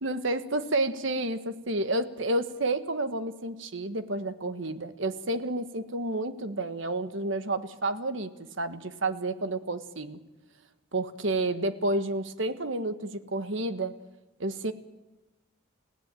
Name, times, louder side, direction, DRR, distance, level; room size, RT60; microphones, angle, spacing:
voice 1, 0.0-8.3 8.6-10.2 10.9-13.9 14.4-14.7, right 2 dB, 70° right, 10 dB, 1.4 m, -30 dB
30.0 x 16.0 x 9.1 m, 1.1 s
head